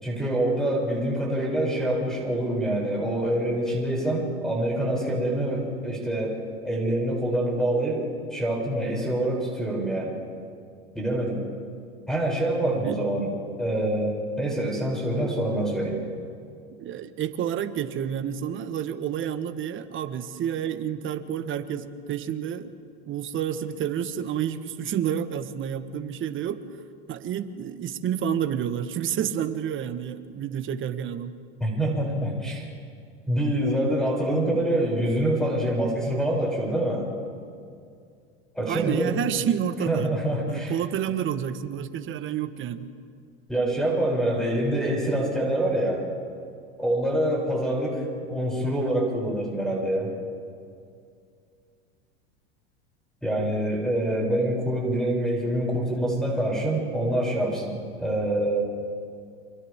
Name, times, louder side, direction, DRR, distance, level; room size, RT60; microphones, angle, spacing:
voice 1, 0.0-6.4 6.6-8.1 8.3-10.1 10.9-11.5 12.1-16.0 31.6-32.6 33.3-37.1 38.6-39.2 39.9-40.7 43.5-46.0 46.8-50.1 53.2-58.6, right 1 dB, ahead, -3 dB, 7.2 m, -26 dB
voice 2, 12.6-13.0 16.8-22.7 23.0-26.7 27.1-31.3 38.7-40.1 40.5-42.9, right 9 dB, 40° right, 10 dB, 1.4 m, -29 dB
29.5 x 26.5 x 3.7 m, 2.3 s
hypercardioid pair, 95°, 32 cm